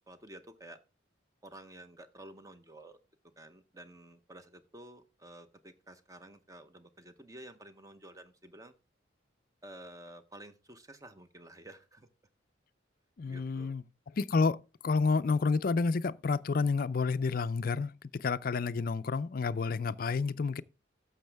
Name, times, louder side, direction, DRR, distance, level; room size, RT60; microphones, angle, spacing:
voice 1, 0.1-0.8 1.4-3.0 3.4-8.7 9.6-12.1 13.3-13.7, right 1 dB, 15° right, 0.8 m, -51 dB
voice 2, 13.2-14.6 14.8-20.6, left 4 dB, 45° left, 0.4 m, -30 dB
12.0 x 7.1 x 3.4 m
head